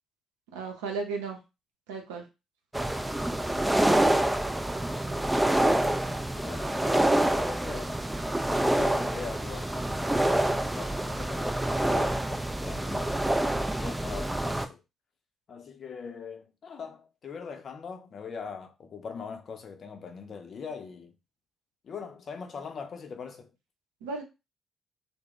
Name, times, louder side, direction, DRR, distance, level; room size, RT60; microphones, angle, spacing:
voice 1, 0.5-1.4 1.9-2.2 24.0-24.2, right 4 dB, 80° right, 0.6 m, -34 dB
sound 1, 2.7-14.7, right 1 dB, 10° right, 0.4 m, -27 dB
voice 2, 6.1-8.0 8.6-14.8 15.5-21.1 21.8-23.5, left 5 dB, 50° left, 0.5 m, -41 dB
2.3 x 2.1 x 3.5 m
hypercardioid pair, 45°, 0 cm